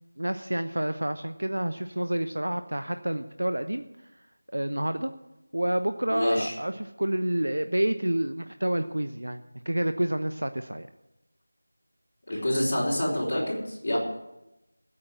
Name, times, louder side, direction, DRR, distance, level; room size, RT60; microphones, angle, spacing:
voice 1, 0.2-3.8 4.5-5.1 5.5-10.9, right 1 dB, 70° right, 9 dB, 0.9 m, -28 dB
voice 2, 6.1-6.5 12.3-14.0, left 1 dB, 40° left, -6 dB, 4.6 m, -27 dB
15.0 x 8.9 x 7.5 m, 0.92 s
figure-of-eight pair, 170°, 0 cm